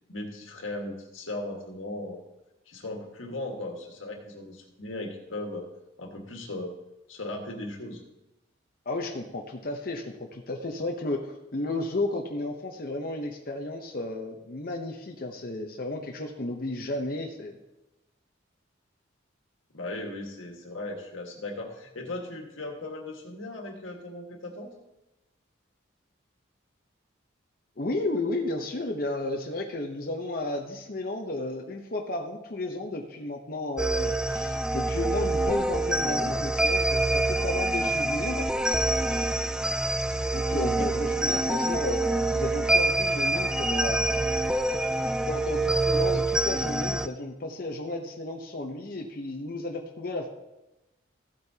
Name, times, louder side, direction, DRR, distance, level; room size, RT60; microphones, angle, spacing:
voice 1, 0.1-2.2 2.7-5.6 6.0-6.7 7.1-8.0 19.7-24.7 40.7-40.9, left 2 dB, 85° left, 2 dB, 1.8 m, -37 dB
voice 2, 8.9-17.6 27.8-38.5 40.3-42.0 42.3-44.2 45.3-50.3, left 2 dB, 45° left, 2 dB, 0.9 m, -33 dB
sound 1, 33.8-47.1, right 2 dB, 5° right, 0.3 m, -26 dB
14.5 x 8.4 x 2.8 m, 0.98 s
head